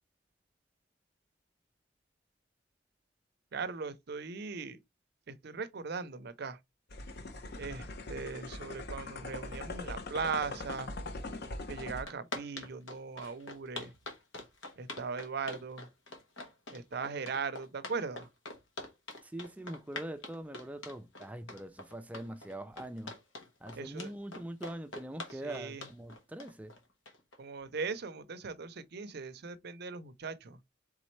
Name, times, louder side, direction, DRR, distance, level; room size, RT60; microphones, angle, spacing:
voice 1, 3.5-4.8 5.3-6.6 7.6-10.9 11.7-13.9 14.8-15.9 16.7-18.3 23.8-24.1 25.3-25.9 27.4-30.6, right 5 dB, 55° right, 0.5 m, -39 dB
sound 1, 6.9-12.1, left 2 dB, 55° left, 0.7 m, -41 dB
sound 2, 11.4-11.5 11.8-27.4, left 2 dB, 75° left, 1.3 m, -44 dB
voice 2, 19.2-23.1 23.6-26.8, right 1 dB, 5° right, 0.4 m, -43 dB
4.2 x 3.6 x 3.1 m
head